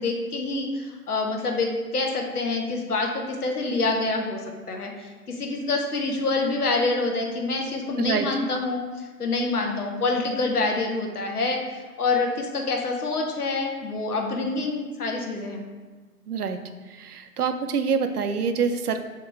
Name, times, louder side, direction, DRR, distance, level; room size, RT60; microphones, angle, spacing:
voice 1, 0.0-4.4 4.7-15.6, left 3 dB, 70° left, 2 dB, 0.9 m, -26 dB
voice 2, 16.3-16.6 17.0-19.0, right 6 dB, 70° right, 8 dB, 0.5 m, -26 dB
3.5 x 2.9 x 4.5 m, 1.3 s
figure-of-eight pair, 160°, 48 cm